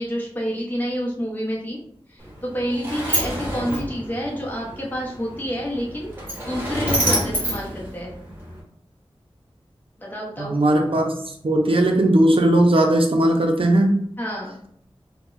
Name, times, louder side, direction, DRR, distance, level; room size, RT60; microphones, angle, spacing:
voice 1, 0.0-1.8 2.1-6.1 6.5-8.1 10.0-10.5 14.2-14.6, equal, 20° left, -4 dB, 1.1 m, -28 dB
Sliding door, 2.2-8.6, right 1 dB, 20° right, 1.2 m, -28 dB
voice 2, 10.4-11.1 11.4-14.1, right 1 dB, 65° right, 3 dB, 0.6 m, -18 dB
4.1 x 2.3 x 2.6 m, 0.65 s
wide cardioid pair, 70°, 10 cm